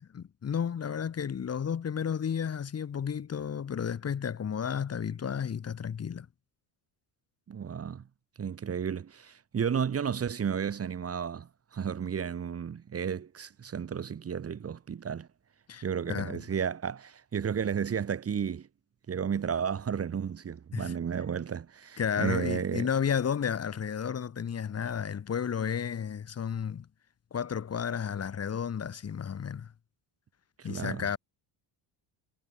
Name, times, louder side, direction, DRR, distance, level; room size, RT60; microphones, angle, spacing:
voice 1, 0.0-6.3 15.7-16.4 20.7-20.9 22.0-26.9 27.3-29.7 30.6-31.2, left 7 dB, 30° left, 4.7 m, -32 dB
voice 2, 7.5-8.0 8.4-15.3 15.8-18.7 19.1-22.9 30.6-31.2, right 7 dB, 30° right, 3.4 m, -33 dB
cardioid pair, 180°, 49 cm